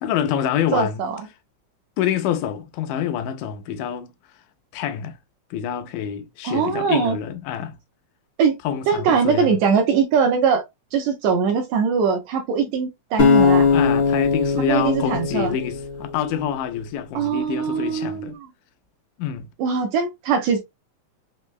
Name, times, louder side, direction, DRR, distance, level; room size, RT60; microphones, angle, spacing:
voice 1, 0.0-1.0 2.0-4.1 4.7-5.2 5.5-7.8 8.6-9.6 13.7-18.4 19.2-19.5, left 9 dB, 85° left, 2.1 m, -26 dB
voice 2, 0.7-1.2 6.4-7.2 8.4-8.6 8.9-10.6 10.9-13.7 14.7-15.5 17.1-18.5 19.6-20.6, right 6 dB, 80° right, 1.7 m, -21 dB
sound 1, 13.2-16.4, left 5 dB, 55° left, 1.2 m, -19 dB
5.2 x 2.1 x 2.3 m
omnidirectional pair, 3.7 m